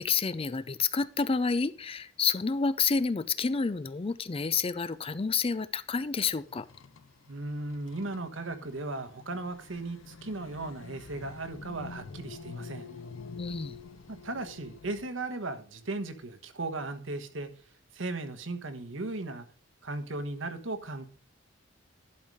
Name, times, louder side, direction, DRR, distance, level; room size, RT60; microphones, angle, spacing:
voice 1, 0.0-6.7 13.4-13.8, left 5 dB, 30° left, 0.4 m, -29 dB
sound 1, 6.4-15.1, left 4 dB, 85° left, 0.5 m, -47 dB
voice 2, 7.3-12.9 14.1-17.5 17.9-19.5 19.8-21.0, right 2 dB, 80° right, 1.3 m, -36 dB
12.0 x 4.8 x 5.4 m
head